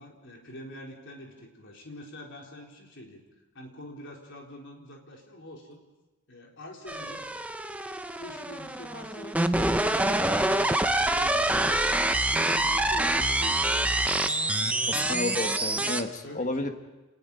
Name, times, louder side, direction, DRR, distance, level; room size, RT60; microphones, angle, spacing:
voice 1, 0.0-3.2 3.5-5.8 6.3-7.2 7.9-11.9 12.2-13.7 14.5-14.9 15.4-15.6 16.2-16.7, left 1 dB, 55° left, 0 dB, 4.2 m, -45 dB
sound 1, 6.9-16.0, right 1 dB, 5° right, 0.8 m, -26 dB
voice 2, 14.9-16.7, left 2 dB, 35° left, 6 dB, 1.6 m, -31 dB
29.5 x 20.0 x 5.5 m, 1.1 s
head